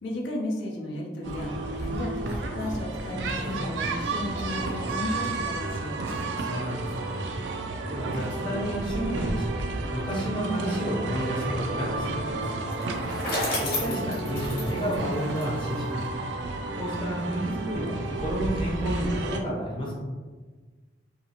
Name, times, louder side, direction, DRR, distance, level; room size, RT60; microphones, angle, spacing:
voice 1, 0.0-1.5 1.8-6.1, left 1 dB, 80° left, -2 dB, 0.5 m, -34 dB
sound 1, 1.2-19.4, right 3 dB, 75° right, 0.3 m, -32 dB
sound 2, 1.3-6.2, equal, 10° right, 0.4 m, -39 dB
voice 2, 6.2-7.2 7.9-9.6 9.9-12.6 13.6-16.0 16.7-19.9, equal, 25° left, -5 dB, 0.6 m, -31 dB
Bicycle, 12.7-15.9, left 1 dB, 50° left, 0.9 m, -32 dB
2.7 x 2.4 x 2.8 m, 1.4 s
head